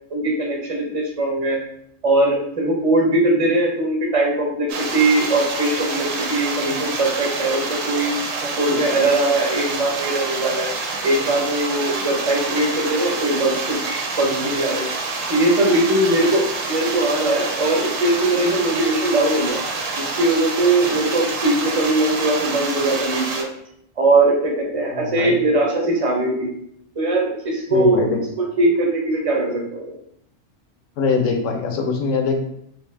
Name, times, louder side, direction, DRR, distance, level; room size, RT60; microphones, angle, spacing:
voice 1, 0.1-1.6 2.0-8.1 8.4-10.7 11.0-14.9 15.3-19.6 20.0-23.5 24.0-26.5 27.0-28.0 28.6-30.0, right 2 dB, 35° right, -1 dB, 0.7 m, -20 dB
sound 1, 4.7-23.4, right 3 dB, 90° right, 1.0 m, -27 dB
voice 2, 24.9-25.4 27.7-28.2 31.0-32.5, left 4 dB, 80° left, 3 dB, 1.0 m, -22 dB
3.3 x 2.7 x 3.2 m, 0.72 s
omnidirectional pair, 1.3 m